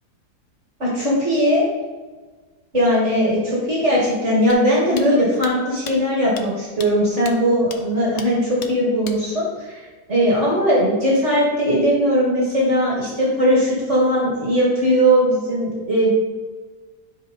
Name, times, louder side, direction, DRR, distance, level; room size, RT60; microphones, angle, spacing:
voice 1, 0.8-1.7 2.7-9.8 10.1-16.1, equal, 45° right, -6 dB, 2.6 m, -19 dB
sound 1, 4.5-4.6 5.0-5.1 5.4-5.5 5.9-6.0 6.4-6.5 6.8-6.9 7.3-7.4 7.7-7.8 8.2-8.3 8.6-8.7 9.0-9.2, left 7 dB, 90° left, 1.4 m, -34 dB
10.5 x 3.7 x 5.4 m, 1.4 s
omnidirectional pair, 1.8 m